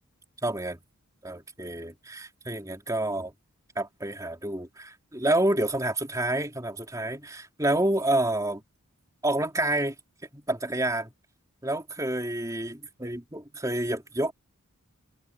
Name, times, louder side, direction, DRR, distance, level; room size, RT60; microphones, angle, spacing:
voice 1, 0.4-0.8 1.2-3.3 3.8-8.6 9.2-10.0 10.3-11.1 11.6-14.3, right 1 dB, 15° right, 3.9 m, -28 dB
open air
head